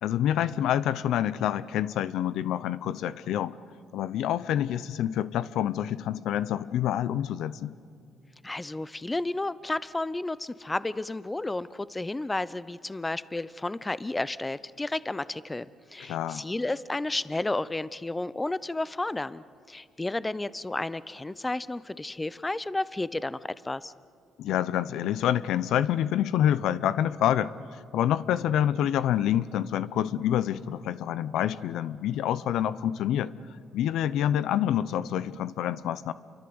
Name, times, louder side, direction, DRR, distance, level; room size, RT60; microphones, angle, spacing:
voice 1, 0.0-3.5 3.9-7.7 16.0-16.5 24.4-27.5 27.9-33.3 33.7-36.1, left 11 dB, 85° left, 16 dB, 0.7 m, -27 dB
voice 2, 8.4-15.7 15.9-23.4 23.6-23.9, left 2 dB, 15° left, 17 dB, 0.7 m, -32 dB
28.5 x 24.0 x 7.9 m, 2.4 s
cardioid pair, 90°, 0 cm